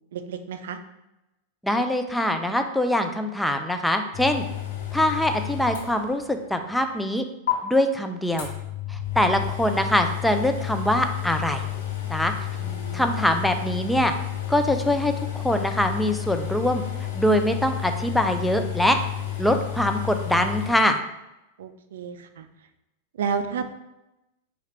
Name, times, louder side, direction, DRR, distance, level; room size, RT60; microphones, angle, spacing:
voice 1, 0.1-0.8 9.2-9.4 12.5-13.2 21.6-22.5 23.2-23.6, right 6 dB, 80° right, 9 dB, 0.4 m, -31 dB
voice 2, 1.6-4.5 4.9-7.3 7.6-8.5 8.9-11.7 12.1-12.3 12.9-14.1 14.5-16.8 17.1-19.0 19.4-21.0, left 1 dB, 5° left, 6 dB, 0.4 m, -23 dB
sound 1, 4.1-6.4 6.8-6.9 7.5-7.6 8.4-20.7, left 12 dB, 80° left, 0.8 m, -31 dB
4.2 x 2.4 x 3.3 m, 0.92 s
hypercardioid pair, 120°, 0 cm